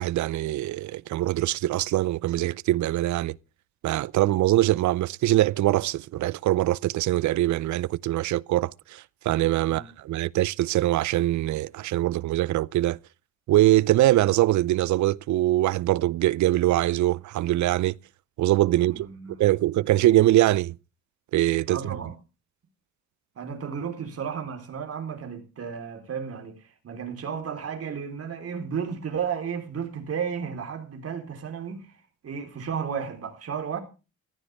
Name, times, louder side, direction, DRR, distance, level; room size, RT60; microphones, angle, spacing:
voice 1, 0.0-3.4 3.8-13.0 13.5-17.9 18.4-19.1 19.4-20.8 21.3-21.9, right 15 dB, 70° right, 0.6 m, -23 dB
voice 2, 18.8-19.4 21.7-22.2 23.4-33.8, right 7 dB, 50° right, 4.0 m, -33 dB
15.0 x 14.5 x 3.5 m
cardioid pair, 90°, 30 cm